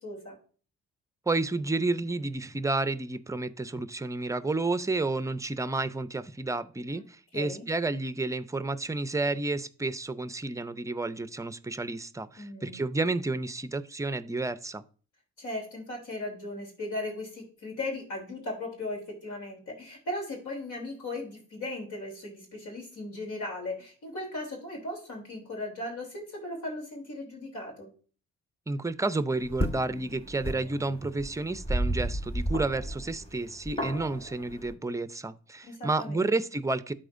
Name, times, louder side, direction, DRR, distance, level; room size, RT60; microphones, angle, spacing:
voice 1, 0.0-0.3 7.3-7.6 12.4-12.8 15.4-27.9 35.6-36.3, left 2 dB, 75° left, 3.3 m, -37 dB
voice 2, 1.3-14.8 28.7-36.9, right 2 dB, 10° right, 0.5 m, -31 dB
sound 1, 29.4-34.7, right 1 dB, 20° left, 1.2 m, -33 dB
12.5 x 4.3 x 2.6 m
cardioid pair, 90°, 30 cm